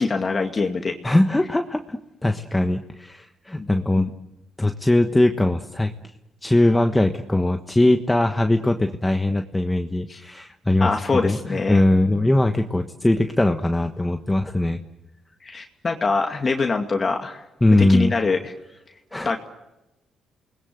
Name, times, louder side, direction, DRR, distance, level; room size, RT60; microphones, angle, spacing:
voice 1, 0.0-1.0 3.9-4.1 10.1-10.2 10.8-11.8 15.4-17.4 17.9-18.5 19.2-19.4, left 4 dB, 35° left, 3 dB, 2.3 m, -24 dB
voice 2, 1.0-4.1 4.6-5.9 6.4-10.9 11.2-14.8 17.6-18.1 19.1-19.3, left 1 dB, 10° left, 5 dB, 1.3 m, -20 dB
29.0 x 20.5 x 7.9 m, 0.95 s
cardioid pair, 90°, 0 cm